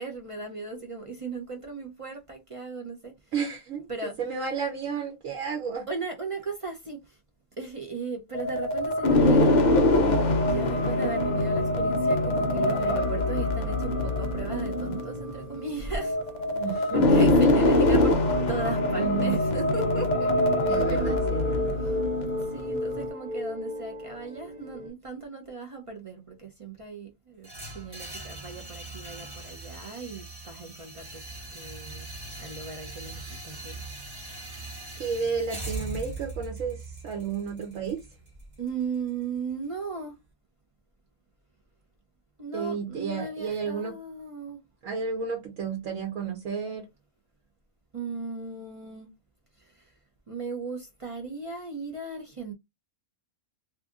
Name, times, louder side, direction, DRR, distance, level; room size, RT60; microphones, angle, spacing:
voice 1, 0.0-3.1 3.9-4.2 5.9-7.2 7.6-9.6 9.9-16.2 16.9-18.2 18.5-20.3 21.8-22.0 22.5-27.5 27.7-31.2 31.5-32.1 32.4-33.8 35.0-35.1 38.6-40.2 42.4-44.6 47.9-49.1 49.6-49.7 50.3-52.5, right 4 dB, 50° right, 0.3 m, -37 dB
voice 2, 3.3-5.9 16.5-17.3 17.6-17.7 19.0-19.4 20.6-21.8 35.0-38.1 42.5-44.0 44.8-46.9, right 6 dB, 70° right, 1.1 m, -32 dB
sound 1, 8.3-23.1, left 2 dB, 80° left, 0.4 m, -24 dB
sound 2, 12.7-24.9, left 1 dB, 90° right, 1.3 m, -36 dB
sound 3, 27.4-39.5, right 2 dB, 20° right, 0.9 m, -41 dB
2.7 x 2.4 x 3.6 m
omnidirectional pair, 1.5 m